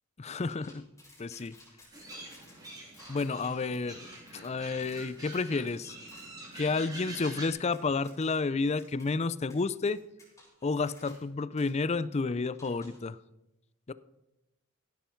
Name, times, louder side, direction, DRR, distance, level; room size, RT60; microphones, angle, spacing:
voice 1, 0.2-0.9 1.2-1.5 3.1-4.1 4.3-6.0 6.5-10.0 10.6-13.2 13.9-14.0, left 4 dB, 30° left, 17 dB, 0.4 m, -31 dB
sound 1, 0.6-6.8 7.2-7.3 7.7-8.5 8.8-9.1 9.5-11.3 11.6-11.7 12.6-13.1, left 2 dB, 15° left, 5.2 m, -57 dB
sound 2, 1.9-7.5, right 2 dB, 15° right, 3.3 m, -46 dB
16.0 x 11.5 x 4.5 m, 0.93 s
head